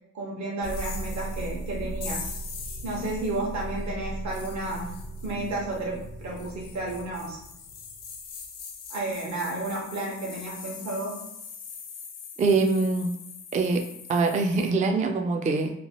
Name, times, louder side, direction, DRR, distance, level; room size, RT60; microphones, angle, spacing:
voice 1, 0.1-2.2 2.8-4.9 5.2-7.4 8.9-11.2, right 2 dB, 60° right, -3 dB, 1.1 m, -32 dB
sound 1, 0.6-14.7, equal, 80° left, 0.6 m, -39 dB
voice 2, 12.4-13.1 13.5-13.8 14.1-15.7, right 3 dB, 25° right, 4 dB, 0.4 m, -23 dB
2.9 x 2.3 x 2.9 m, 0.83 s
cardioid pair, 65°, 32 cm